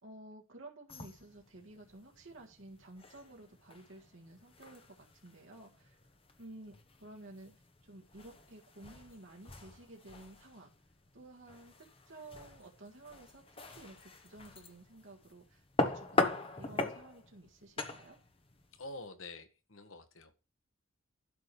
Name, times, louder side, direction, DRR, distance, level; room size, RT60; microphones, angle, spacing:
voice 1, 0.0-6.0 6.4-6.7 7.0-7.5 7.8-10.7 11.1-11.7 12.1-18.2, right 2 dB, 65° right, 1.7 m, -53 dB
sound 1, 0.9-19.1, left 2 dB, 25° left, 1.1 m, -41 dB
voice 2, 18.7-20.3, left 2 dB, 75° left, 1.5 m, -47 dB
12.0 x 4.8 x 6.9 m
head